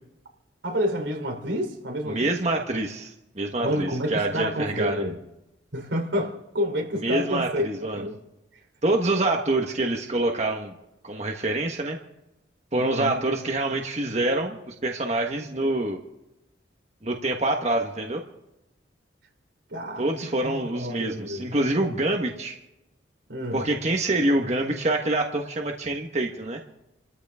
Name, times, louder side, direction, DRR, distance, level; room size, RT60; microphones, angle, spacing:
voice 1, 0.6-2.4 3.6-5.2 5.7-7.7 7.9-8.2 12.8-13.2 19.7-20.1 20.4-21.5 23.3-23.6, equal, 85° right, 3.6 m, -29 dB
voice 2, 2.1-5.0 7.0-8.0 8.8-10.7 11.0-12.0 12.7-16.0 17.0-18.2 20.0-22.6 23.5-26.6, right 2 dB, 35° right, 1.4 m, -26 dB
29.0 x 13.5 x 3.6 m
head